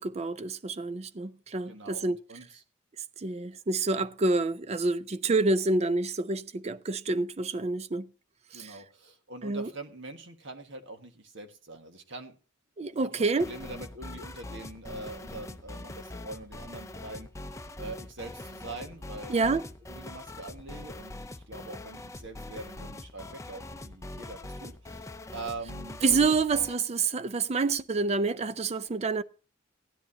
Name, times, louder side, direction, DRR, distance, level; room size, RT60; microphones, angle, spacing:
voice 1, 0.0-2.2 3.2-8.1 8.5-8.8 9.4-9.7 12.8-13.5 19.3-19.6 26.0-29.2, right 3 dB, 30° right, 0.5 m, -28 dB
voice 2, 1.7-2.6 8.5-12.3 12.9-17.5 17.8-19.4 19.9-21.1 21.5-26.0, right 2 dB, 65° right, 1.6 m, -43 dB
sound 1, 13.4-26.8, left 1 dB, 15° left, 0.6 m, -43 dB
16.0 x 10.5 x 2.7 m
head